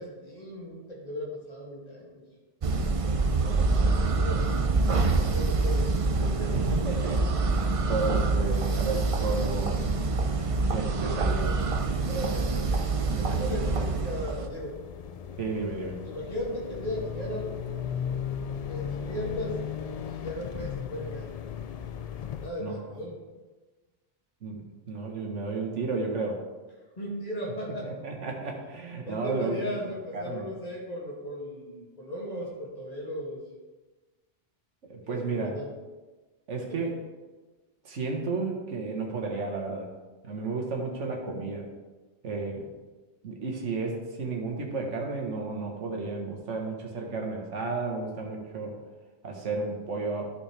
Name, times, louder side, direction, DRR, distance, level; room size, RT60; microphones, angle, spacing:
voice 1, 0.0-2.2 3.4-4.5 5.3-6.7 12.1-14.8 16.0-17.5 18.7-19.6 20.0-21.4 22.4-23.2 27.0-27.9 29.0-33.4 35.1-35.7 36.7-36.9, equal, 35° left, -5 dB, 2.5 m, -37 dB
sound 1, 2.6-14.5, right 3 dB, 40° right, 0.5 m, -26 dB
voice 2, 6.7-7.2 7.5-9.7 10.7-11.5 15.4-16.0 22.6-22.9 24.4-24.6 24.9-26.4 27.8-29.7 30.1-30.4 34.9-35.6 36.5-37.0 37.9-39.9 40.2-41.7 42.2-42.7 43.2-48.8 49.2-50.3, right 3 dB, 85° right, 1 dB, 1.6 m, -32 dB
sound 2, 13.2-22.5, left 8 dB, 85° left, 0.3 m, -37 dB
12.0 x 6.3 x 3.4 m, 1.2 s
omnidirectional pair, 1.2 m